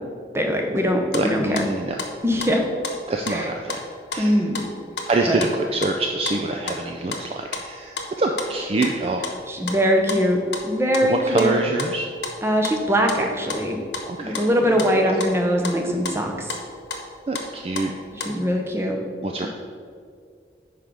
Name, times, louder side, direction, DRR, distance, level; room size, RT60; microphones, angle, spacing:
voice 1, 0.3-1.6 2.2-2.6 3.3-3.5 4.2-4.6 5.3-5.4 9.5-10.4 10.6-11.6 12.4-13.8 14.2-16.5 18.1-19.0 19.4-19.5, equal, 15° right, 2 dB, 0.7 m, -22 dB
sound 1, 0.8-18.4, left 3 dB, 85° left, 1.0 m, -33 dB
voice 2, 1.1-2.0 3.1-3.8 4.1-4.4 5.1-9.3 11.1-12.1 14.1-14.4 15.1-15.2 17.3-17.9 19.2-19.5, right 2 dB, 35° right, 2 dB, 0.4 m, -25 dB
5.6 x 5.0 x 6.1 m, 2.2 s
head